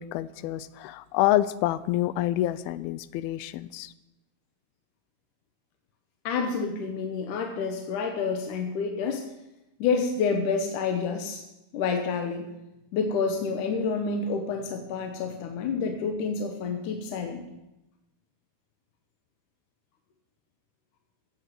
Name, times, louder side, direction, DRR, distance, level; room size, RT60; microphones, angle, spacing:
voice 1, 0.0-3.9, left 14 dB, 90° left, 17 dB, 2.5 m, -27 dB
voice 2, 6.3-9.3 9.8-11.4 11.7-12.5 12.9-17.5, left 5 dB, 70° left, 5 dB, 2.3 m, -28 dB
16.0 x 6.6 x 7.6 m, 0.95 s
omnidirectional pair, 4.3 m